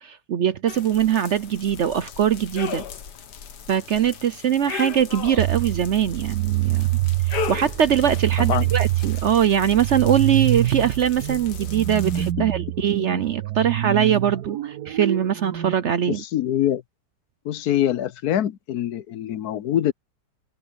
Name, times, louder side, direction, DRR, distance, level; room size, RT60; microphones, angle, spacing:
voice 1, 0.0-2.8 3.7-6.9 7.3-16.2, right 9 dB, 60° right, 0.8 m, -22 dB
sound 1, 0.7-12.3, left 7 dB, 90° left, 1.9 m, -37 dB
sound 2, 5.4-15.7, right 15 dB, 85° right, 1.4 m, -26 dB
voice 2, 16.1-16.8 17.4-19.9, left 11 dB, 70° left, 1.2 m, -24 dB
omnidirectional pair, 1.7 m